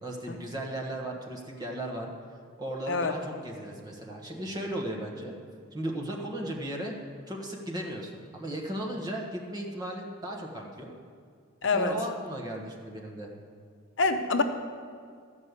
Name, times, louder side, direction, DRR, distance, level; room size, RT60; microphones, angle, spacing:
voice 1, 0.0-2.1 2.6-5.3 5.7-6.9 7.3-10.9 11.7-13.3, right 1 dB, 20° right, 0 dB, 1.4 m, -36 dB
voice 2, 11.6-11.9 14.0-14.4, left 3 dB, 60° left, 6 dB, 0.7 m, -25 dB
13.0 x 5.4 x 8.2 m, 2.1 s
head